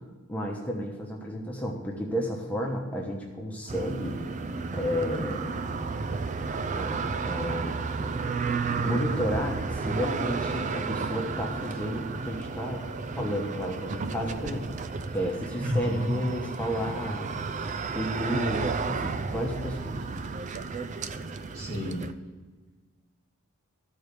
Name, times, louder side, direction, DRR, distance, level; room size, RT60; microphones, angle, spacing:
voice 1, 0.3-4.2 4.7-5.6 6.7-7.8 8.8-12.8 13.2-14.7 15.1-17.3 17.9-20.0, equal, 5° left, -1 dB, 1.1 m, -32 dB
sound 1, 3.7-22.1, right 4 dB, 35° right, 0.4 m, -32 dB
voice 2, 15.6-16.1 21.5-22.1, equal, 80° right, -4 dB, 4.1 m, -30 dB
14.0 x 4.7 x 6.8 m, 1.3 s
head